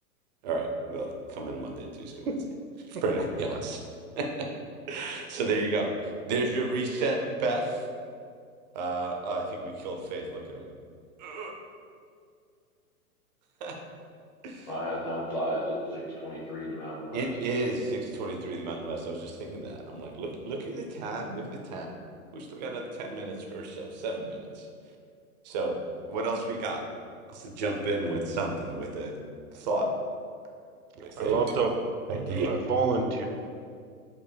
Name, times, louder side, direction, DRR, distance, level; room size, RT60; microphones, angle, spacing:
voice 1, 0.4-2.3 2.9-3.8 4.2-4.5 4.9-5.9 6.3-7.8 8.7-10.7 11.2-11.5 13.6-13.8 14.4-14.7 17.1-22.0 22.3-24.7 25.4-25.8 26.1-26.8 27.3-29.1 29.5-29.9 31.0-31.5 32.1-32.5, right 2 dB, 30° right, 2 dB, 0.4 m, -32 dB
voice 2, 14.7-17.3, equal, 25° left, -7 dB, 0.8 m, -33 dB
voice 3, 31.2-31.7 32.5-33.3, right 5 dB, 90° right, 4 dB, 0.6 m, -27 dB
4.5 x 2.4 x 3.2 m, 2.3 s
hypercardioid pair, 115°, 44 cm